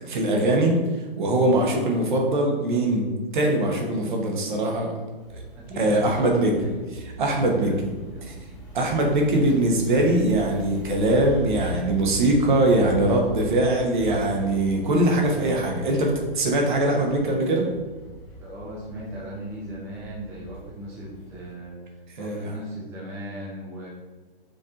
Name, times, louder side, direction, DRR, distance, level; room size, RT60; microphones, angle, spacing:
voice 1, 0.0-0.8 1.2-4.9 5.3-5.4 5.8-6.7 7.2-7.9 8.3-8.4 8.7-17.7 22.2-22.5, right 1 dB, 55° right, 1 dB, 1.1 m, -22 dB
sound 1, 5.2-21.5, right 1 dB, 10° left, 1.2 m, -40 dB
voice 2, 5.5-6.8 7.5-8.4 18.4-23.9, right 1 dB, 10° right, -6 dB, 0.6 m, -38 dB
5.2 x 3.6 x 2.5 m, 1.3 s
figure-of-eight pair, 130°, 29 cm